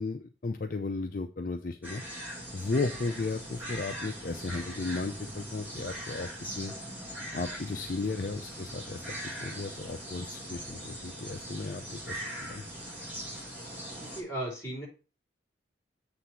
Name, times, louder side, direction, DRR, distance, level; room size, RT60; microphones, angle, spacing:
voice 1, 0.0-2.0 2.5-6.7 7.3-9.0 9.4-12.6, left 3 dB, 50° left, 6 dB, 0.5 m, -35 dB
sound 1, 1.8-14.2, right 1 dB, 10° right, 1.9 m, -41 dB
voice 2, 14.0-14.9, right 1 dB, 15° left, -2 dB, 3.6 m, -36 dB
7.9 x 3.4 x 5.7 m, 0.34 s
head